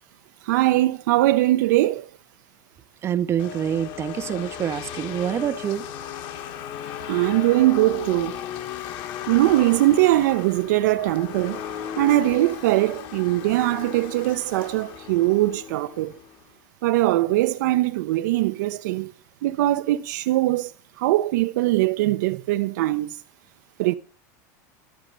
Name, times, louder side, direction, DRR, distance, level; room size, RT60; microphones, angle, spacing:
voice 1, 0.4-2.1 7.1-8.4 9.3-11.6 12.0-16.1 16.8-19.1 19.4-20.7 21.0-23.2 23.8-23.9, right 16 dB, 80° right, 0.5 m, -21 dB
voice 2, 3.0-5.8, right 9 dB, 30° right, 0.4 m, -26 dB
sound 1, 3.4-16.4, left 10 dB, 50° left, 1.1 m, -36 dB
13.0 x 5.1 x 6.6 m
supercardioid pair, 140°, 10 cm